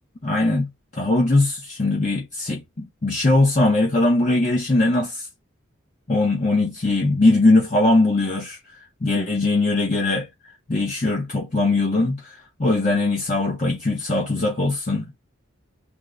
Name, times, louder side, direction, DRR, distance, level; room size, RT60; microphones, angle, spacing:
voice 1, 0.2-5.3 6.1-8.6 9.0-10.3 10.7-15.2, left 2 dB, 40° left, 0.7 m, -20 dB
3.6 x 2.1 x 3.4 m
head